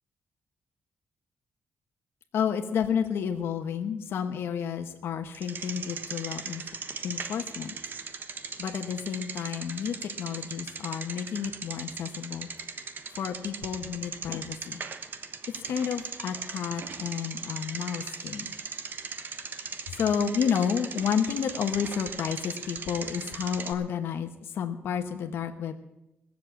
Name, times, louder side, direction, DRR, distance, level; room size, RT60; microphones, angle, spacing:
voice 1, 2.3-6.6 7.0-7.7 8.6-12.5 12.8-14.8 15.7-18.5 19.9-25.7, left 7 dB, 85° left, 5 dB, 1.2 m, -31 dB
Bicycle, 5.3-23.7, right 5 dB, 55° right, 1.2 m, -39 dB
19.0 x 7.6 x 8.6 m, 0.91 s
wide cardioid pair, 135°, 4 cm